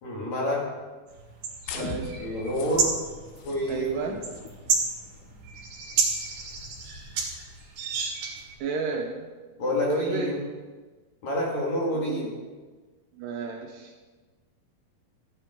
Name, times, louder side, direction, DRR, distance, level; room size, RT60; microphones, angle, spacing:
voice 1, 0.0-0.7 2.2-3.0 3.4-4.2 9.6-10.3 11.2-12.3, left 1 dB, 50° left, -3 dB, 3.1 m, -28 dB
sound 1, 1.1-8.6, right 5 dB, 60° right, 3.0 m, -31 dB
sound 2, 1.6-7.7, left 6 dB, 80° left, 1.8 m, -42 dB
voice 2, 1.8-2.1 3.7-4.2 8.6-9.3 9.9-10.3 11.9-12.3 13.2-13.9, right 5 dB, 75° right, 2 dB, 2.3 m, -31 dB
15.5 x 9.2 x 3.8 m, 1.3 s
omnidirectional pair, 4.5 m